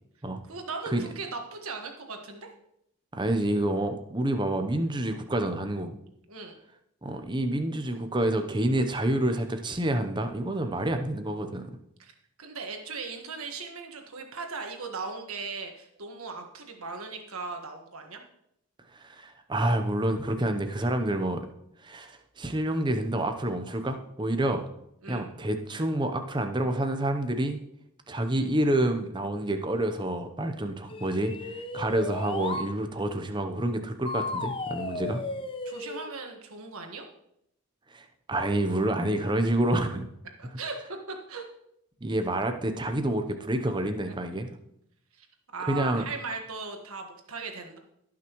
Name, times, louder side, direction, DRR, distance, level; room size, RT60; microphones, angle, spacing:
voice 1, 0.5-2.5 6.3-6.6 12.0-12.1 12.4-18.2 25.0-25.4 35.6-37.1 40.4-40.8 41.1-41.4 44.0-44.1 45.1-45.3 45.5-47.8, right 4 dB, 85° right, 3 dB, 1.5 m, -38 dB
voice 2, 3.1-5.9 7.0-11.6 19.0-21.5 21.8-24.7 25.1-27.6 28.1-35.2 37.9-40.1 42.0-44.5 45.7-46.0, right 1 dB, 20° right, 7 dB, 0.7 m, -28 dB
sound 1, 30.9-32.7 34.1-36.1, left 2 dB, 25° left, 0.6 m, -34 dB
18.0 x 6.0 x 3.1 m, 0.78 s
head